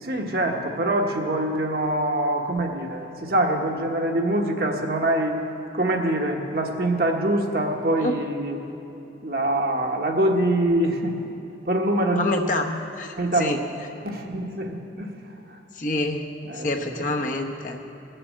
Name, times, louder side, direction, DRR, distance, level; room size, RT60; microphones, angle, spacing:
voice 1, 0.0-5.4 5.7-8.6 9.2-11.2 11.7-12.3 13.2-13.5 14.0-15.1 16.4-17.0, right 1 dB, 55° right, 2 dB, 1.3 m, -24 dB
voice 2, 12.2-13.6 15.7-16.3 16.5-17.8, left 2 dB, 45° left, 2 dB, 1.0 m, -27 dB
19.0 x 6.8 x 8.6 m, 3.0 s
head